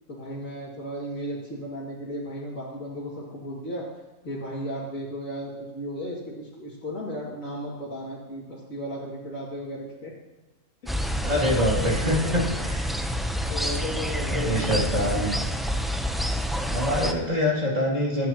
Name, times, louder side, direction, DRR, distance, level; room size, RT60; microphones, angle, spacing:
voice 1, 0.1-3.8 4.2-10.1 10.8-10.9 11.5-12.4 13.5-14.8, equal, 60° left, -7 dB, 3.0 m, -35 dB
sound 1, 10.9-17.1, equal, ahead, 0.5 m, -28 dB
voice 2, 11.2-12.9 14.3-15.4 16.6-18.3, left 1 dB, 30° right, -5 dB, 2.8 m, -25 dB
24.5 x 10.5 x 3.0 m, 1.1 s
omnidirectional pair, 1.5 m